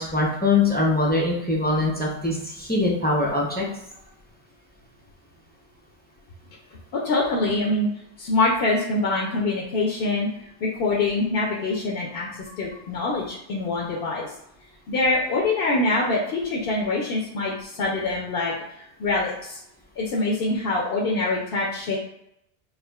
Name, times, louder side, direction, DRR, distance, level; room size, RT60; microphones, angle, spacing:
voice 1, 0.0-3.6, left 2 dB, 15° left, -4 dB, 0.3 m, -22 dB
voice 2, 6.9-7.9 8.2-10.3 10.6-14.3 14.9-19.6 20.0-22.0, left 2 dB, 65° left, -2 dB, 0.7 m, -24 dB
4.7 x 2.5 x 2.3 m, 0.80 s
omnidirectional pair, 1.2 m